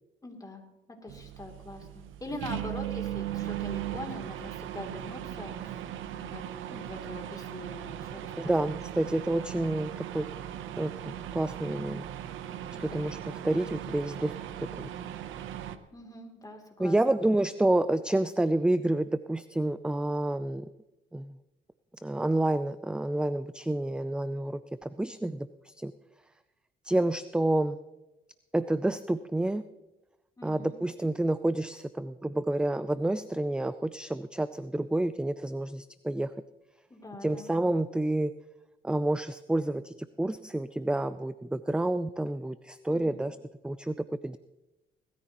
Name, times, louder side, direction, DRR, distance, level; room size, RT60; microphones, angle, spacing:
voice 1, 0.2-0.6 0.9-5.9 6.1-6.4 6.7-8.5 12.7-13.1 15.5-15.6 15.9-17.0 30.4-30.8 36.9-37.5 42.9-43.3, left 2 dB, 20° left, 2 dB, 3.0 m, -43 dB
sound 1, 1.1-15.8, right 11 dB, 85° right, 0.8 m, -38 dB
voice 2, 8.4-10.3 10.8-12.1 12.8-14.3 14.8-14.9 16.8-20.7 21.1-21.4 22.0-25.9 26.8-27.8 28.5-29.7 30.4-36.3 37.2-38.3 38.8-43.4 43.6-44.4, right 1 dB, 5° right, 14 dB, 0.4 m, -29 dB
19.5 x 13.5 x 3.0 m, 1.0 s
cardioid pair, 90°, 20 cm